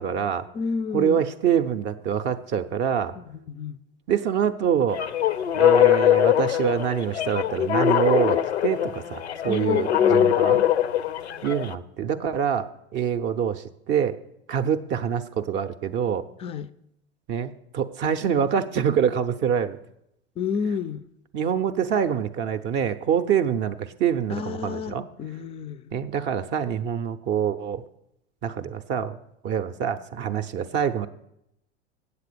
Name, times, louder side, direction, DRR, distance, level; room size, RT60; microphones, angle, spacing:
voice 1, 0.0-0.5 0.9-3.1 4.1-5.0 5.5-10.6 11.4-14.2 14.5-16.2 17.3-19.8 21.3-25.0 25.9-27.8 28.4-29.2 29.4-31.1, right 8 dB, 35° right, 0.6 m, -25 dB
voice 2, 0.5-1.2 3.2-3.8 9.5-10.4 16.4-16.7 20.4-21.1 24.3-25.9, left 6 dB, 20° left, 0.4 m, -31 dB
sound 1, 4.9-11.7, left 11 dB, 80° left, 0.6 m, -22 dB
8.2 x 7.7 x 6.8 m
figure-of-eight pair, 85°, 33 cm